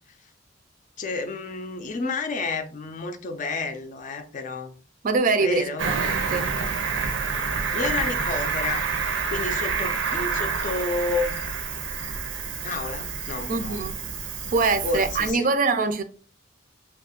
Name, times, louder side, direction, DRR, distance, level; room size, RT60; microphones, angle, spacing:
voice 1, 1.0-4.7 5.4-5.9 7.7-8.9 9.3-11.4 12.6-13.9 14.8-15.5, left 3 dB, 40° left, 0.4 m, -30 dB
voice 2, 5.0-6.5 13.5-14.0 14.5-16.0, right 4 dB, 45° right, 0.4 m, -24 dB
Cricket, 5.8-15.3, right 5 dB, 90° right, 0.6 m, -28 dB
2.7 x 2.4 x 3.7 m
head